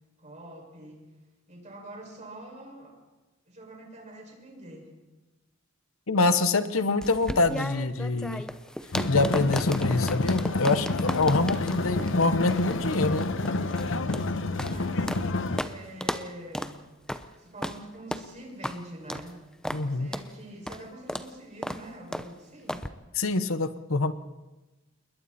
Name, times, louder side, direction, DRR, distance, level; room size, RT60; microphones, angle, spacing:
voice 1, 0.2-1.1 1.5-3.0 3.5-5.0 14.6-16.8 17.4-19.4 19.8-22.9, right 1 dB, 35° right, 0 dB, 6.0 m, -45 dB
voice 2, 6.1-8.4 9.1-13.3 19.7-20.1 23.2-24.1, left 3 dB, 85° left, 12 dB, 1.1 m, -25 dB
sound 1, 7.0-15.3 15.6-15.7 16.0-16.3 16.5-16.7 17.1-17.3 17.6-17.8 18.1-18.3 18.6-18.8 19.1-19.3 19.6-19.8 20.1-20.3 20.7-20.8 21.1-21.3 21.6-21.8 22.1-22.3 22.7-22.9, equal, 5° left, 0.8 m, -34 dB
sound 2, 8.9-15.6, left 2 dB, 65° left, 1.1 m, -29 dB
28.5 x 21.5 x 4.3 m, 1.1 s
head